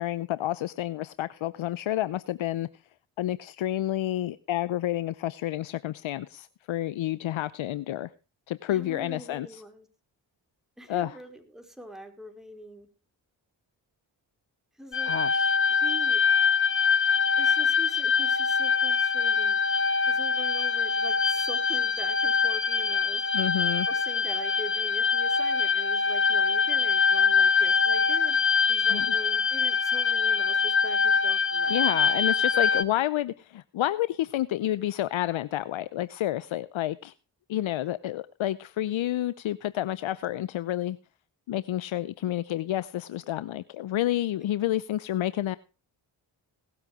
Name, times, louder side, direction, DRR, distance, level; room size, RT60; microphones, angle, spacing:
voice 1, 0.0-2.7 3.2-8.1 8.5-9.6 10.9-11.2 15.1-15.5 23.3-23.9 28.9-29.1 31.7-37.1 37.5-41.0 41.5-45.6, left 13 dB, 75° left, 0.7 m, -29 dB
voice 2, 8.7-9.9 10.8-12.9 14.8-15.1 15.7-16.2 17.4-19.6 20.1-23.3 23.9-28.4 28.7-31.8, equal, ahead, 4.6 m, -43 dB
sound 1, 14.9-32.8, left 5 dB, 25° left, 1.0 m, -24 dB
18.5 x 8.0 x 4.8 m
supercardioid pair, 45°, 48 cm